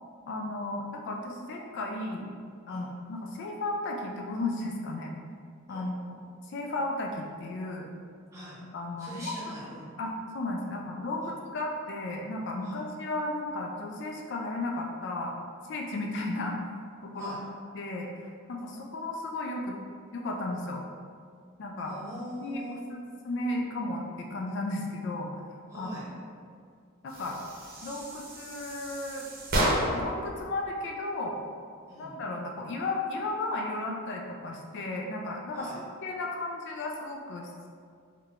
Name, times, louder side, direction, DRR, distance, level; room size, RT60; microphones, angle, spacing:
voice 1, 0.3-2.3 2.7-5.1 5.7-6.2 6.4-7.9 8.7-9.3 10.0-15.3 15.7-16.6 17.0-17.3 17.7-19.8 20.1-20.8 21.6-22.0 22.4-22.6 22.9-25.3 25.7-26.1 27.0-27.4 27.8-29.3 29.9-31.4 32.0-37.7, left 2 dB, 55° left, 0 dB, 0.3 m, -34 dB
voice 2, 9.0-9.9 12.6-12.8 17.1-17.4 21.9-22.9 25.7-26.0 31.9-32.1 35.5-35.7, equal, 15° right, -9 dB, 0.9 m, -42 dB
sound 1, 27.1-30.2, right 1 dB, 45° right, 0.7 m, -31 dB
3.7 x 2.1 x 3.5 m, 2.2 s
head